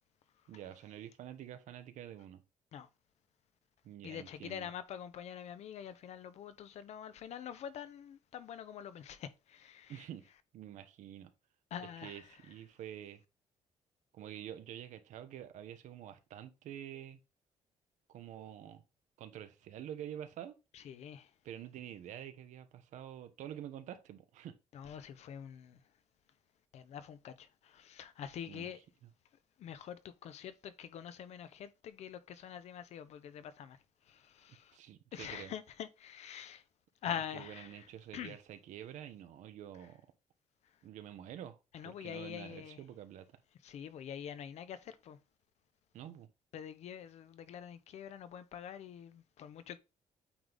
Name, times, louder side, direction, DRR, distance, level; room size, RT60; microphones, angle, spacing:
voice 1, 0.5-2.4 3.8-4.7 9.9-10.3 10.5-11.3 11.8-13.2 14.1-17.2 18.1-18.8 19.2-20.6 21.4-24.5 28.5-28.7 34.7-35.5 37.0-40.0 40.8-43.3 45.9-46.3, right 10 dB, 85° right, 1.0 m, -48 dB
voice 2, 4.0-10.1 11.7-12.3 20.7-21.3 24.7-25.8 26.7-28.8 29.6-33.8 34.0-34.8 35.1-36.6 37.0-37.9 38.1-38.3 41.7-42.8 43.6-45.2 46.5-49.8, left 9 dB, 65° left, 0.8 m, -45 dB
8.6 x 3.9 x 3.5 m
cardioid pair, 150°, 12 cm